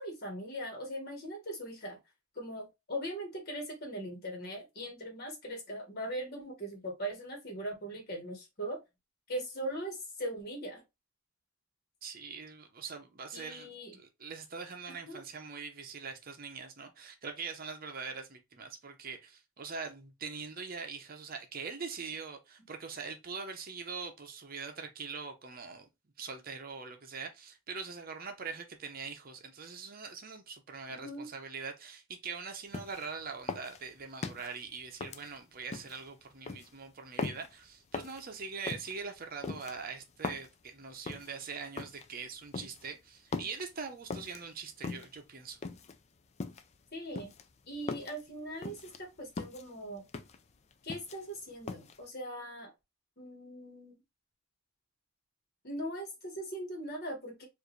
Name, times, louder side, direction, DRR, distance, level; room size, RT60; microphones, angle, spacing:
voice 1, 0.0-2.0 2.3-8.8 9.3-10.8 13.3-13.9 14.9-15.2 30.9-31.3 46.9-47.3 47.7-50.0 50.8-52.7 53.2-54.0 55.6-57.5, right 1 dB, 50° left, 1.4 m, -40 dB
voice 2, 12.0-25.8 26.2-45.6, right 5 dB, 45° right, 0.7 m, -43 dB
sound 1, 32.7-33.1 33.5-34.5 35.0-36.0 36.5-36.7 37.2-37.5 37.9-38.2 38.7-38.9 39.4-40.5 41.1-41.3 41.8-42.1 42.5-42.9 43.3-43.7 44.1-44.4 44.8-45.2 45.6-46.0 46.4-46.7 47.2-48.2 48.6-49.0 49.4-49.7 50.1-50.4 50.7-51.4 51.7-52.0, left 4 dB, 30° left, 0.4 m, -40 dB
4.6 x 2.6 x 3.1 m
head